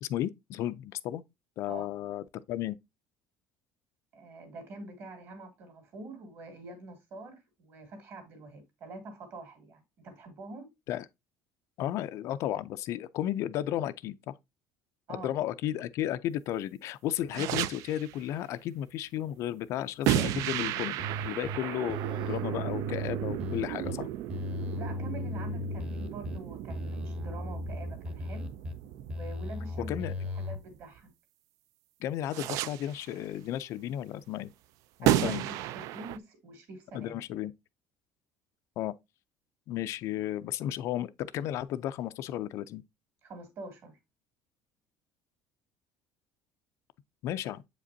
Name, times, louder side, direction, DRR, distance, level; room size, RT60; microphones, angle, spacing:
voice 1, 0.0-1.2 1.6-2.8 10.9-11.0 11.8-14.3 15.1-24.1 29.9-30.1 32.0-34.5 35.0-35.4 36.9-37.5 38.8-38.9 39.7-42.8 47.2-47.6, left 12 dB, 50° left, 0.4 m, -34 dB
voice 2, 4.1-10.7 15.1-15.3 24.8-28.5 29.1-29.9 30.3-31.1 35.0-37.2 43.2-44.0, right 2 dB, 40° right, 2.4 m, -45 dB
sound 1, 17.3-18.2 20.0-31.0 32.3-33.1 35.0-36.2, right 13 dB, 60° right, 0.3 m, -34 dB
sound 2, 21.0-21.6 21.9-23.9 24.3-26.4 26.7-28.7 29.1-30.6, left 1 dB, 15° right, 0.9 m, -36 dB
7.6 x 5.0 x 2.6 m
cardioid pair, 180°, 7 cm